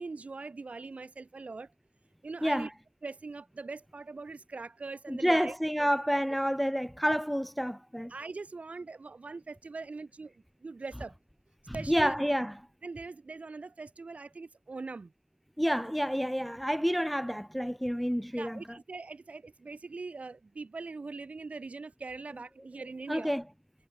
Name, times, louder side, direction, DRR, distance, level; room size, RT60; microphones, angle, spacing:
voice 1, 0.0-1.7 2.2-2.7 3.0-5.9 8.1-11.2 11.7-12.2 12.8-15.1 18.4-23.3, right 3 dB, 70° right, 5.7 m, -42 dB
voice 2, 5.1-8.1 11.7-12.7 15.6-18.8 23.1-23.4, equal, ahead, 0.4 m, -29 dB
wide cardioid pair, 65°, 2 cm